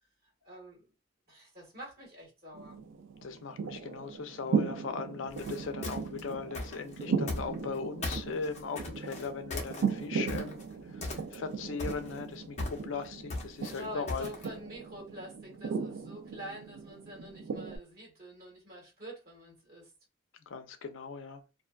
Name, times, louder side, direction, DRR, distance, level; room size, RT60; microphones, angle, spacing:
voice 1, 0.4-0.9 1.3-2.8 13.6-19.9, equal, 50° right, 1.4 m, -46 dB
sound 1, 2.5-17.8, right 5 dB, 90° right, 0.4 m, -37 dB
voice 2, 3.2-10.6 10.9-14.3 20.5-21.4, left 5 dB, 85° left, 0.5 m, -39 dB
sound 2, 5.3-7.8 8.0-10.7 11.0-11.5 11.8-14.6, left 2 dB, 35° left, 0.6 m, -38 dB
2.4 x 2.2 x 2.3 m
head